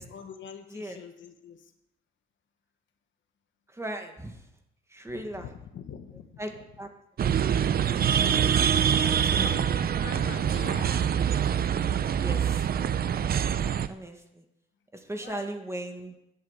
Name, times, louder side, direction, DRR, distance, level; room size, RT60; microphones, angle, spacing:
voice 1, 0.1-1.7 5.2-6.3 9.3-11.3 15.2-15.4, left 7 dB, 70° left, 6 dB, 1.5 m, -44 dB
voice 2, 3.7-4.5 4.9-5.5 6.4-6.9 7.2-7.4 8.1-8.3 9.0-9.9 12.2-12.7 13.3-13.6 13.9-14.5 14.9-16.2, right 1 dB, 15° right, 5 dB, 1.9 m, -38 dB
sound 1, 7.2-13.9, right 8 dB, 50° right, 0.7 m, -25 dB
10.5 x 8.5 x 8.1 m, 0.84 s
cardioid pair, 90°, 20 cm